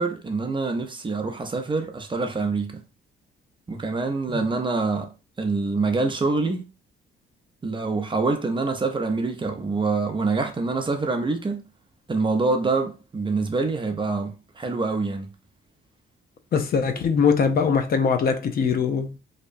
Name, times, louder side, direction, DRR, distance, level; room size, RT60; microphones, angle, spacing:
voice 1, 0.0-2.8 3.7-6.7 7.6-11.6 12.1-15.3, right 3 dB, 25° right, 0.5 m, -25 dB
voice 2, 16.5-19.2, left 6 dB, 50° left, 0.4 m, -22 dB
2.7 x 2.1 x 2.5 m
cardioid pair, 90°, 20 cm